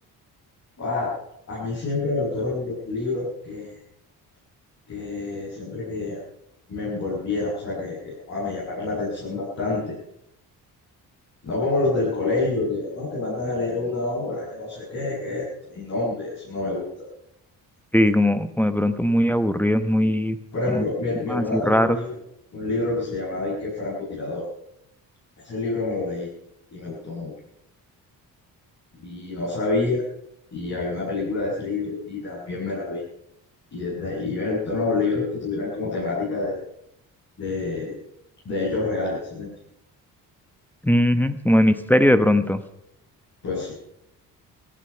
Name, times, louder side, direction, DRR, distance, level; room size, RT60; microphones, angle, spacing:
voice 1, 0.8-1.1 1.5-3.7 4.9-6.2 6.7-9.9 11.4-17.1 20.5-22.1 22.5-24.5 25.4-26.3 26.7-27.3 29.0-30.0 30.5-33.0 33.7-36.6 37.4-37.9 38.4-39.5 43.4-43.7, left 3 dB, 45° left, -7 dB, 7.9 m, -27 dB
voice 2, 17.9-20.4 20.7-20.8 21.3-22.0 40.8-42.6, equal, 5° left, 8 dB, 1.0 m, -19 dB
18.0 x 14.0 x 5.6 m, 0.78 s
cardioid pair, 110°, 36 cm